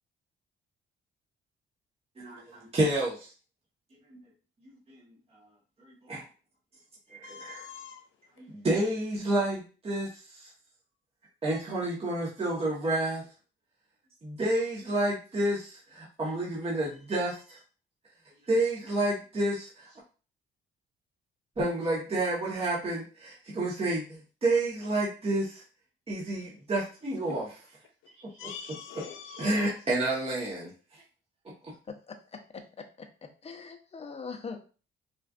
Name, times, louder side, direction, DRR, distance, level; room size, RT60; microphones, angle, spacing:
voice 1, 2.2-3.3 5.1-5.2 5.8-6.2 7.1-7.6 8.4-10.5 11.4-13.2 14.2-17.6 18.5-19.9 21.6-25.6 26.1-27.5 28.2-28.5 29.3-30.7, right 1 dB, 30° right, -6 dB, 1.2 m, -30 dB
voice 2, 7.2-8.0 27.2-27.4 28.4-29.8, left 8 dB, 80° left, 6 dB, 0.7 m, -43 dB
voice 3, 31.9-34.6, left 5 dB, 30° left, 4 dB, 0.7 m, -42 dB
4.2 x 2.5 x 2.4 m, 0.36 s
cardioid pair, 90°, 20 cm